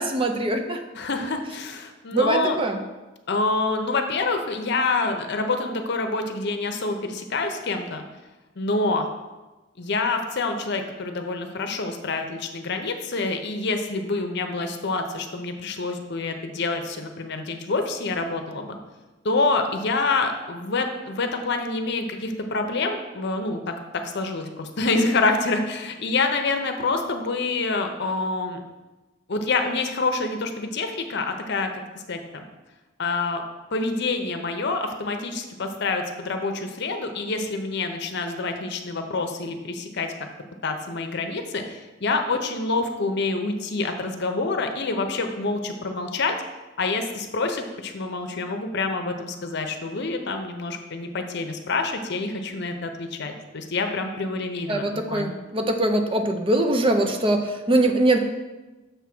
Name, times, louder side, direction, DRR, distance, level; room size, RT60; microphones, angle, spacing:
voice 1, 0.0-0.8 2.1-2.8 54.7-58.2, right 2 dB, 25° right, 5 dB, 0.6 m, -22 dB
voice 2, 0.9-2.6 3.3-8.0 8.6-9.1 9.8-18.8 19.2-28.6 29.3-31.8 32.1-32.4 33.0-33.4 33.7-40.1 40.6-46.3 46.8-55.4, left 3 dB, 55° left, 5 dB, 0.7 m, -27 dB
6.9 x 3.6 x 6.0 m, 1.1 s
head